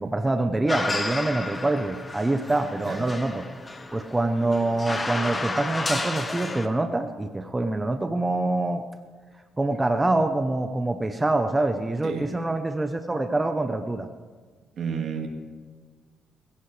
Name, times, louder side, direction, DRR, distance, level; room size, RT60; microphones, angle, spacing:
voice 1, 0.0-3.4 3.9-8.8 9.6-14.1, right 2 dB, 15° right, 7 dB, 0.8 m, -25 dB
sound 1, 0.7-6.7, left 2 dB, 25° left, 1.3 m, -32 dB
voice 2, 14.8-15.3, right 7 dB, 65° right, 3 dB, 2.1 m, -31 dB
21.0 x 16.5 x 3.3 m, 1.5 s
cardioid pair, 90°, 0 cm